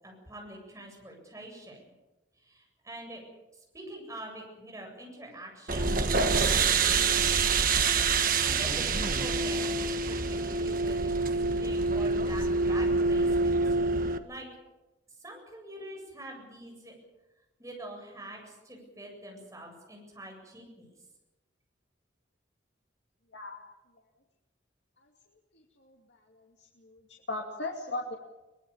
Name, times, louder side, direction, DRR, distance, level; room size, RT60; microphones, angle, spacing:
voice 1, 0.0-1.8 2.4-3.2 3.5-5.9 6.3-7.2 8.1-11.1 11.4-13.8 14.2-14.5 15.1-16.9 17.6-20.9, right 1 dB, 15° right, 0 dB, 7.9 m, -45 dB
sound 1, 5.7-14.2, right 4 dB, 50° right, 1.4 m, -26 dB
voice 2, 25.5-27.0 27.3-28.2, left 2 dB, 70° left, 0 dB, 2.5 m, -38 dB
23.5 x 21.0 x 7.2 m, 1.1 s
head